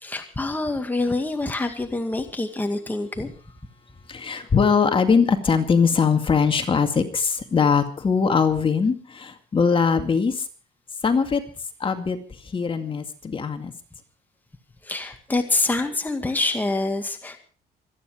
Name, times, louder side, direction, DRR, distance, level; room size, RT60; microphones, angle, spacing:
voice 1, 0.0-3.3 14.8-17.4, left 2 dB, 10° left, 5 dB, 2.1 m, -26 dB
voice 2, 4.1-10.4 11.0-11.4 11.8-12.2 12.5-13.7, left 5 dB, 30° left, 7 dB, 2.2 m, -21 dB
26.0 x 10.0 x 5.0 m, 0.39 s
cardioid pair, 110°, 17 cm